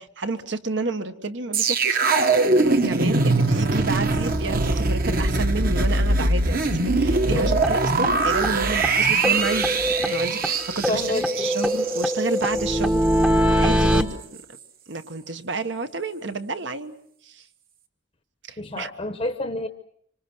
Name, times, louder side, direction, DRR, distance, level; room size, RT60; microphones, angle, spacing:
voice 1, 0.0-13.0 13.5-14.2 14.9-16.9 17.2-17.5 18.5-18.9, right 3 dB, 70° right, 8 dB, 1.4 m, -30 dB
sound 1, 1.5-12.7 13.0-13.2, right 3 dB, 50° right, 1.4 m, -22 dB
sound 2, 7.6-7.7 8.0-8.1 8.4-8.5 8.8-8.9 9.2-10.5 10.8-14.0, equal, 5° right, 0.9 m, -22 dB
voice 2, 10.9-11.5 18.6-19.7, left 2 dB, 30° left, 8 dB, 0.9 m, -29 dB
26.0 x 25.5 x 6.2 m, 0.69 s
head